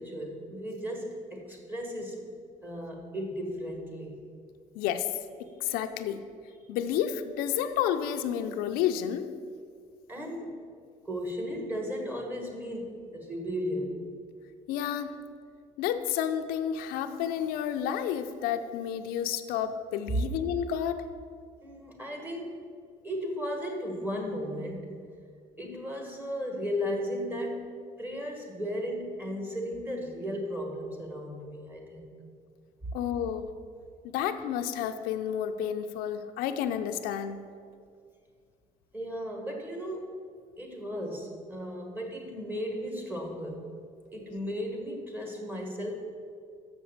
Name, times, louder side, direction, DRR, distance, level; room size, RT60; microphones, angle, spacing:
voice 1, 0.0-2.2 2.6-4.2 10.1-10.6 11.0-14.0 21.6-22.6 23.0-25.0 25.6-27.7 28.0-32.1 38.9-40.2 40.6-43.7 44.1-45.9, equal, 10° right, 2 dB, 1.5 m, -35 dB
voice 2, 4.7-6.2 6.7-9.3 14.7-15.2 15.8-21.1 32.9-33.5 34.1-37.4, left 9 dB, 90° left, 7 dB, 0.5 m, -30 dB
6.9 x 6.0 x 7.1 m, 2.2 s
cardioid pair, 120°, 15 cm